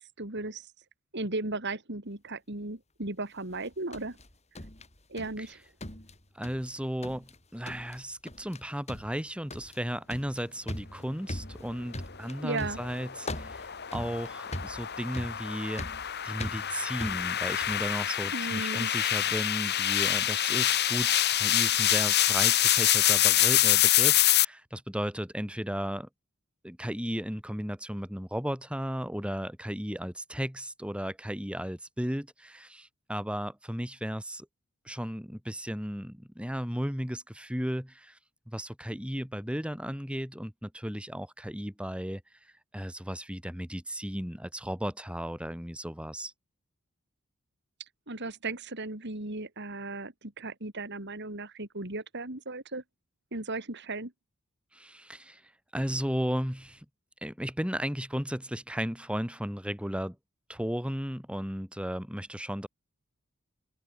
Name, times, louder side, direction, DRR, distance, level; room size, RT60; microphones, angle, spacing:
voice 1, 0.2-0.7 1.1-4.2 5.1-5.6 12.4-12.8 18.3-18.9 48.1-52.8 53.3-54.1, right 2 dB, 55° right, 3.8 m, -36 dB
sound 1, 3.5-5.5 5.8-6.7 7.0-7.4 7.7-8.0 8.3-8.6 8.9-17.9, left 1 dB, 30° left, 6.1 m, -41 dB
voice 2, 6.3-15.8 16.2-26.1 26.6-34.5 34.9-38.2 38.5-42.2 42.7-46.3 54.7-55.4 55.7-56.9 57.2-60.2 60.5-62.7, equal, 5° right, 3.9 m, -35 dB
sound 2, 12.4-24.4, left 12 dB, 55° left, 1.7 m, -26 dB
open air
head